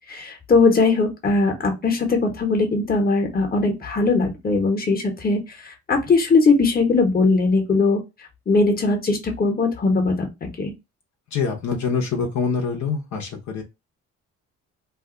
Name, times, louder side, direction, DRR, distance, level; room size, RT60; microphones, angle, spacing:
voice 1, 0.1-8.0 8.5-10.7, left 3 dB, 30° left, 4 dB, 1.1 m, -20 dB
voice 2, 11.3-13.6, left 5 dB, 70° left, 1 dB, 1.0 m, -25 dB
2.6 x 2.3 x 3.8 m, 0.23 s
cardioid pair, 90°, 30 cm